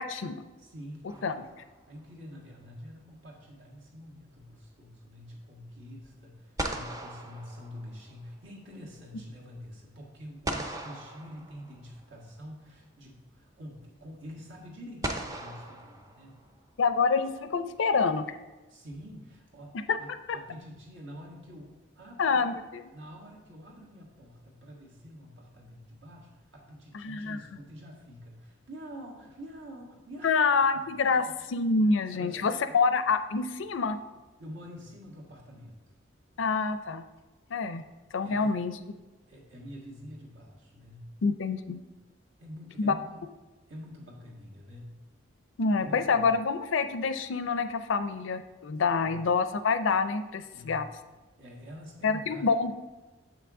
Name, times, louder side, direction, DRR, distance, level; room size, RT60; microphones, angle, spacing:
voice 1, 0.0-0.4 1.2-1.3 16.8-18.3 19.9-20.0 20.3-20.4 22.2-22.8 27.0-27.4 30.2-34.0 36.4-37.0 37.5-37.8 38.1-38.7 41.2-41.8 42.8-42.9 45.6-50.9 52.0-52.7, left 4 dB, 75° left, 10 dB, 0.5 m, -27 dB
voice 2, 0.6-1.4 1.9-16.4 18.7-22.6 22.9-30.4 30.9-31.4 32.1-32.8 34.4-35.9 38.2-38.5 39.3-41.1 42.4-43.2 43.7-45.0 45.8-46.3 50.5-50.8 51.4-52.5, equal, 70° right, -2 dB, 1.8 m, -47 dB
sound 1, 1.1-2.0 6.0-6.1 6.6-8.3 10.5-12.0 13.4-13.5 15.0-16.7, right 1 dB, 15° right, 0.5 m, -38 dB
7.4 x 5.9 x 3.6 m, 1.2 s
head